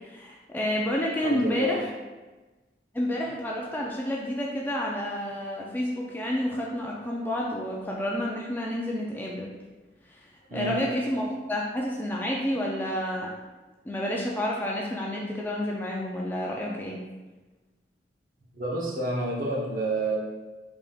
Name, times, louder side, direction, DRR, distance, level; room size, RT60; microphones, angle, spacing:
voice 1, 0.0-1.9 2.9-9.6 10.1-13.3 13.8-17.0, left 1 dB, 10° left, -2 dB, 0.3 m, -30 dB
voice 2, 1.2-1.8 10.5-10.8 16.7-16.8 18.5-20.2, right 1 dB, 50° right, -3 dB, 0.8 m, -29 dB
3.8 x 3.5 x 2.3 m, 1.2 s
head